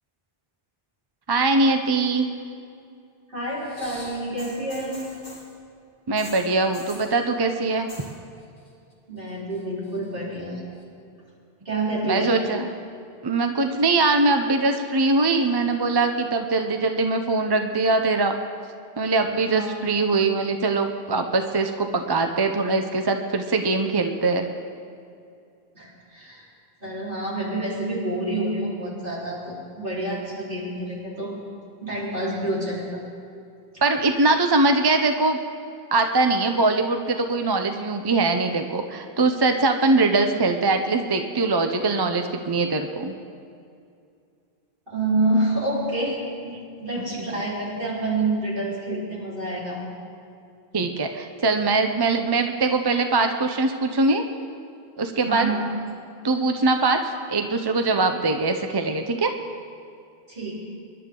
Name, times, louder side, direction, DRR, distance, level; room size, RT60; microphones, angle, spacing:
voice 1, 1.3-2.3 6.1-7.9 12.1-12.7 13.2-18.4 19.0-24.5 33.8-35.4 35.9-43.1 50.7-54.2 55.0-55.5 56.2-57.0 57.3-59.3, right 3 dB, 30° right, 5 dB, 0.6 m, -22 dB
voice 2, 3.3-5.0 9.1-10.6 11.6-12.4 19.5-19.9 25.7-26.4 26.8-31.3 31.8-33.0 33.7-33.8 44.9-46.2 46.4-49.8 55.3-55.7 60.3-60.7, right 2 dB, 60° right, -7 dB, 4.3 m, -28 dB
sound 1, 3.6-5.5 6.2-7.1 7.7-8.2 8.4-8.9 9.3-10.0 10.8-10.9, left 1 dB, 45° left, 2.6 m, -43 dB
25.5 x 11.5 x 3.8 m, 2.4 s
omnidirectional pair, 1.0 m